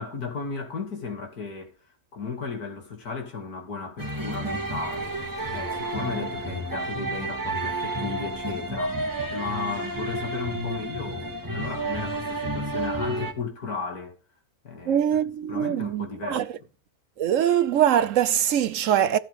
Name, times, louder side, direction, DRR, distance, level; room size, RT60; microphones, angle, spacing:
voice 1, 0.0-1.7 2.1-5.2 5.5-14.2 14.6-15.0 15.5-16.5, left 4 dB, 85° left, 2.9 m, -35 dB
sound 1, 4.0-13.3, right 1 dB, 15° right, 1.9 m, -31 dB
voice 2, 14.9-16.6 17.2-19.2, right 10 dB, 65° right, 0.9 m, -23 dB
15.5 x 7.4 x 3.5 m
omnidirectional pair, 1.6 m